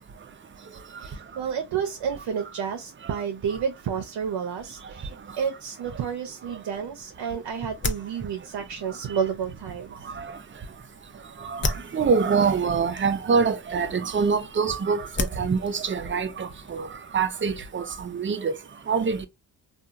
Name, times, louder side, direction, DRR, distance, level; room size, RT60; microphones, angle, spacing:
voice 1, 1.0-10.0, right 7 dB, 70° right, 0.7 m, -30 dB
sound 1, 6.7-17.0, left 2 dB, 30° left, 0.6 m, -37 dB
voice 2, 11.4-15.1 15.4-16.9 17.1-18.6 18.9-19.3, right 5 dB, 30° right, 0.5 m, -25 dB
2.7 x 2.3 x 2.4 m
cardioid pair, 60°, 42 cm